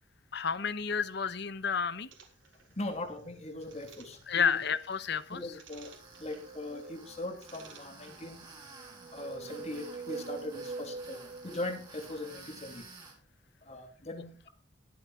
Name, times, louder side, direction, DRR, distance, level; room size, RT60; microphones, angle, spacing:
voice 1, 0.3-2.1 4.3-5.4, left 6 dB, 65° left, 14 dB, 1.0 m, -30 dB
sound 1, 2.1-8.6, right 6 dB, 85° right, 3.7 m, -59 dB
voice 2, 2.7-4.6 5.3-5.9 6.2-8.4 9.1-12.8 13.6-14.5, left 2 dB, 35° left, 5 dB, 3.1 m, -40 dB
Tools, 3.6-13.1, right 3 dB, 25° right, 5.4 m, -53 dB
sound 2, 6.0-7.6 8.5-12.4, right 4 dB, 40° right, 0.9 m, -45 dB
22.5 x 8.2 x 2.5 m, 0.39 s
head